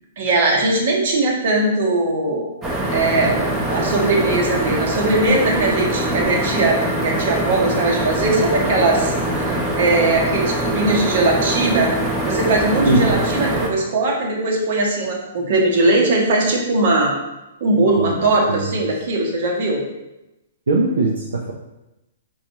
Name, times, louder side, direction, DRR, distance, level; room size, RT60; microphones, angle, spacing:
voice 1, 0.2-2.5 2.9-11.9 12.3-17.1 17.6-19.8, right 2 dB, 60° right, -1 dB, 1.0 m, -19 dB
sound 1, 2.6-13.7, right 1 dB, 15° right, 0.7 m, -23 dB
voice 2, 20.7-21.5, right 2 dB, 80° right, -2 dB, 0.5 m, -19 dB
5.1 x 2.4 x 2.9 m, 0.96 s
hypercardioid pair, 125°, 0 cm